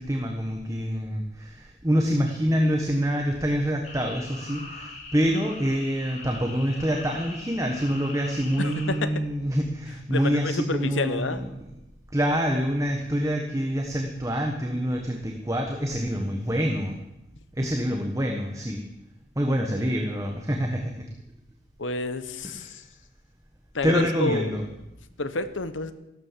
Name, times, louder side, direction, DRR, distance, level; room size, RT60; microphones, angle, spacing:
voice 1, 0.0-11.5 12.1-17.0 17.6-18.8 19.3-21.0 22.4-22.8 23.8-24.6, equal, 15° right, 2 dB, 1.3 m, -26 dB
sound 1, 3.8-9.0, left 3 dB, 35° left, 2.9 m, -42 dB
voice 2, 8.6-9.1 10.1-11.4 21.8-22.8 23.7-24.6 25.2-25.9, left 3 dB, 85° left, 11 dB, 1.1 m, -29 dB
14.5 x 12.0 x 7.4 m, 0.95 s
head